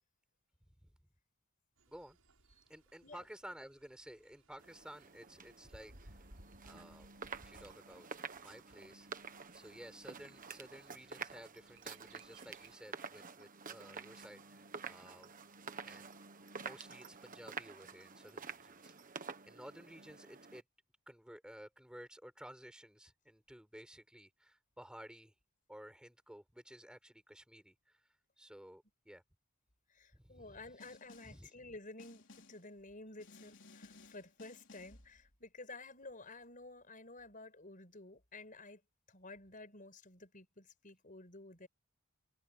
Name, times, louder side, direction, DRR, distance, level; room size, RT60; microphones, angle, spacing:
Bird, 1.8-12.8, right 1 dB, 80° right, 7.0 m, -64 dB
voice 1, 1.9-2.2 2.7-6.2 6.6-7.1 7.4-8.1 8.3-15.3 15.8-16.1 16.6-18.9 19.5-20.6 21.1-25.3 25.7-28.1 28.4-29.2 30.1-30.6 31.2-31.5, equal, 5° right, 5.0 m, -54 dB
sound 1, 4.6-20.6, right 5 dB, 40° right, 1.4 m, -49 dB
voice 2, 29.9-38.8 39.1-41.7, left 2 dB, 40° left, 5.7 m, -52 dB
Snare drum, 30.8-31.5 32.0-32.7 33.2-35.1, left 3 dB, 55° left, 4.2 m, -58 dB
head